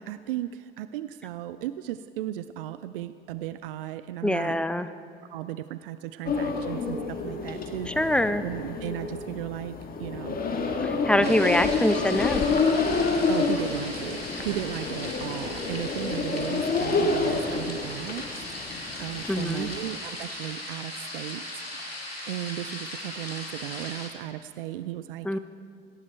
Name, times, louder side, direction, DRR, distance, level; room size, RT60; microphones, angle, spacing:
voice 1, 0.0-4.6 5.3-10.4 11.2-11.5 13.3-18.4 18.7-21.6 22.2-25.4, right 13 dB, 65° right, 13 dB, 0.5 m, -36 dB
voice 2, 4.2-4.9 7.9-8.4 10.8-12.4 19.3-19.7 25.2-25.4, left 1 dB, 5° left, 12 dB, 0.6 m, -24 dB
sound 1, 6.2-19.9, left 4 dB, 30° left, 1.7 m, -29 dB
sound 2, 11.2-24.1, left 1 dB, 90° left, 1.7 m, -38 dB
18.0 x 16.0 x 4.4 m, 2.3 s
figure-of-eight pair, 65°, 30 cm